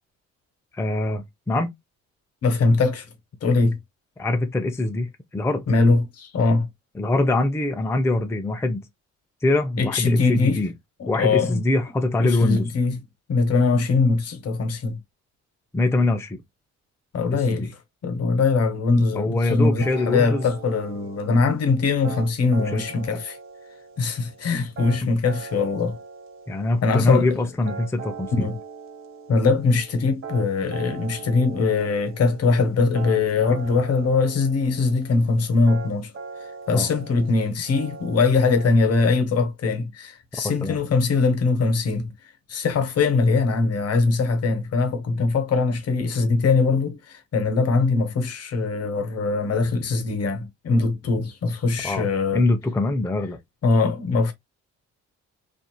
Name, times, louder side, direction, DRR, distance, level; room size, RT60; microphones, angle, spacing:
voice 1, 0.7-1.7 4.2-5.7 7.0-8.9 9.4-10.7 11.1-12.7 15.7-16.4 17.3-17.7 19.1-20.5 22.6-22.8 25.0-25.1 26.5-28.5 36.7-36.9 40.6-40.8 51.8-52.1 52.3-53.4, left 2 dB, 10° left, 0.5 m, -23 dB
voice 2, 2.4-3.1 3.4-3.8 5.7-6.7 9.8-10.6 11.0-11.6 12.2-13.0 13.3-15.0 17.1-17.8 18.0-23.4 24.0-26.0 26.8-27.3 28.3-28.6 29.3-36.1 36.7-42.1 42.5-52.4 53.6-54.3, left 4 dB, 55° left, 0.9 m, -21 dB
sound 1, 19.8-38.7, right 5 dB, 45° right, 1.7 m, -40 dB
2.8 x 2.5 x 2.2 m
cardioid pair, 90°, 30 cm